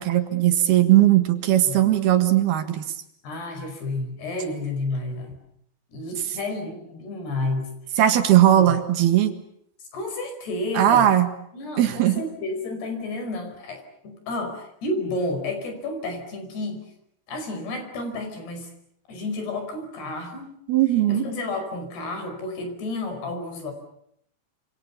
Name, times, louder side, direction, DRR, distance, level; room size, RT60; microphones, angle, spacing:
voice 1, 0.0-2.8 8.0-9.4 10.8-11.3 11.8-12.2 20.7-21.2, right 12 dB, 70° right, 8 dB, 3.5 m, -18 dB
voice 2, 3.2-5.4 5.9-7.7 8.5-8.8 9.9-11.1 11.5-16.9 17.3-18.7 19.1-20.5 21.1-23.7, left 2 dB, 70° left, 6 dB, 7.1 m, -31 dB
27.0 x 27.0 x 7.1 m, 0.71 s
omnidirectional pair, 4.9 m